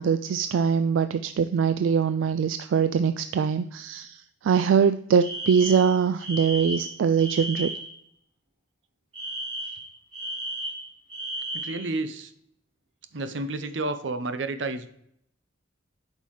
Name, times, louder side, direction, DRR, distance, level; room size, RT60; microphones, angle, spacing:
voice 1, 0.0-7.7, right 6 dB, 85° right, 10 dB, 0.3 m, -23 dB
Alarm, 5.2-7.9 9.1-11.9, right 1 dB, 30° right, 3.0 m, -34 dB
voice 2, 11.5-12.3 13.1-14.9, right 2 dB, 70° right, 10 dB, 0.7 m, -30 dB
8.4 x 5.4 x 3.1 m, 0.71 s
head